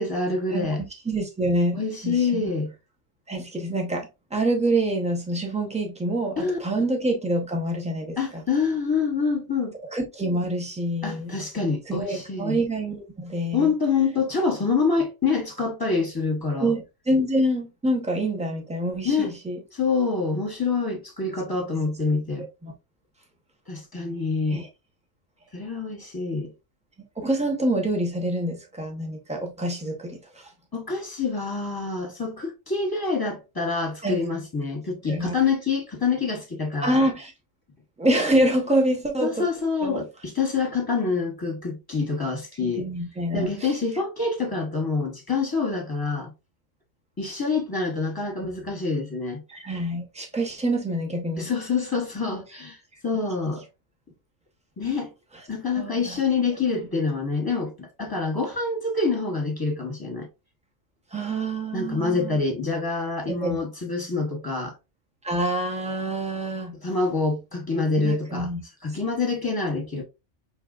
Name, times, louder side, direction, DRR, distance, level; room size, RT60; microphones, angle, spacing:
voice 1, 0.0-0.8 1.7-2.7 6.4-6.9 8.2-9.8 11.0-12.6 13.5-16.7 19.0-19.3 19.7-22.5 23.7-24.7 25.5-26.5 30.7-37.1 39.2-42.9 43.3-46.3 47.2-49.4 51.4-52.8 53.0-53.6 54.8-55.1 55.5-60.3 61.7-64.7 66.8-68.5 68.8-70.0, left 4 dB, 20° left, 0.9 m, -26 dB
voice 2, 0.5-1.8 2.0-2.5 3.3-8.4 9.9-11.3 11.9-13.7 16.6-19.6 21.7-21.8 22.4-22.7 24.5-24.7 27.2-30.5 34.0-34.2 35.1-35.4 36.8-37.3 38.0-39.5 39.8-40.0 42.6-43.7 49.5-51.5 55.8-56.2 61.1-62.4 63.4-63.6 65.2-66.7 68.0-68.6, right 1 dB, 5° right, 0.6 m, -26 dB
4.7 x 3.1 x 2.3 m
omnidirectional pair, 1.3 m